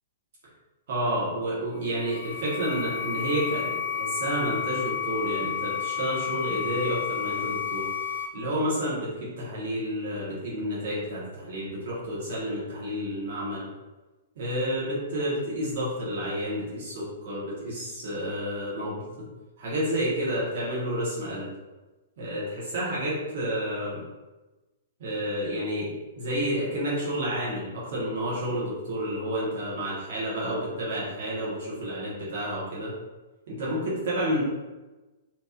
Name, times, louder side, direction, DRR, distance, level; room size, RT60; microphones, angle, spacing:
voice 1, 0.9-7.9 8.3-13.7 14.4-19.1 19.6-21.5 22.2-24.0 25.0-32.9 33.5-34.4, equal, 55° right, -7 dB, 1.3 m, -30 dB
sound 1, 1.8-8.3, left 8 dB, 85° left, 0.5 m, -31 dB
2.9 x 2.6 x 3.7 m, 1.2 s
figure-of-eight pair, 110°, 0 cm